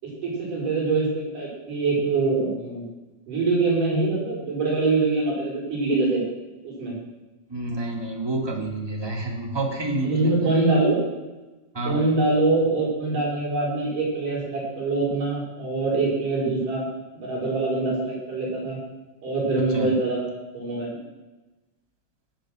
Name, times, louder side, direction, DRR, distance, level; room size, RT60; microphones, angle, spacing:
voice 1, 0.0-2.8 3.3-6.2 6.6-6.9 10.0-11.0 11.9-16.9 17.1-18.8 19.2-20.2 20.5-20.9, right 3 dB, 75° right, -4 dB, 5.9 m, -24 dB
voice 2, 7.5-10.3 11.7-12.1 19.7-19.9, right 2 dB, 10° right, -1 dB, 1.6 m, -28 dB
19.0 x 7.4 x 6.3 m, 1.1 s
omnidirectional pair, 3.7 m